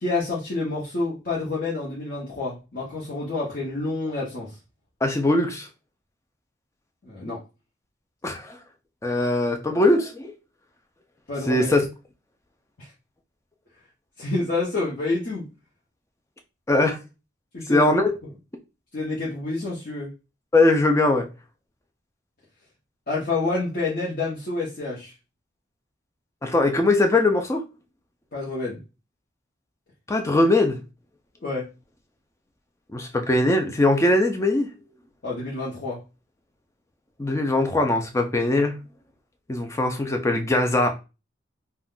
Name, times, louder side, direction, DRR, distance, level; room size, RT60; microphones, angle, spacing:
voice 1, 0.0-4.6 7.0-7.4 11.3-11.7 12.8-12.9 14.2-15.5 17.5-17.9 18.2-18.3 18.9-20.1 23.1-25.1 28.3-28.8 31.4-31.7 35.2-36.0, left 3 dB, 50° left, 0.8 m, -28 dB
voice 2, 5.0-5.7 8.2-8.6 9.0-10.3 11.5-11.8 16.7-17.0 17.7-18.1 20.5-21.3 26.4-27.6 30.1-30.8 32.9-34.7 37.2-38.8 39.5-40.9, left 2 dB, 15° left, 0.3 m, -21 dB
2.4 x 2.2 x 3.6 m
head